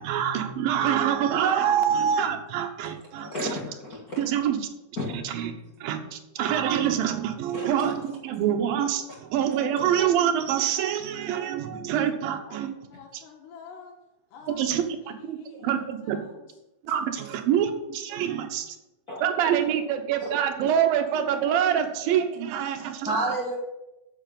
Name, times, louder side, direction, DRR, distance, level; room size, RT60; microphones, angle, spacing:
voice 1, 0.0-3.3 4.2-4.7 5.1-5.5 5.8-12.8 13.1-13.2 14.5-16.2 16.8-18.8 19.2-23.3, right 9 dB, 70° right, 6 dB, 2.6 m, -26 dB
voice 2, 3.2-4.2 5.0-5.1 7.5-7.9 19.1-19.2 23.0-23.6, equal, 65° left, -4 dB, 0.8 m, -31 dB
voice 3, 12.4-14.0 14.3-16.5, left 6 dB, 85° left, -1 dB, 4.0 m, -48 dB
7.9 x 7.8 x 8.6 m, 0.95 s
omnidirectional pair, 4.8 m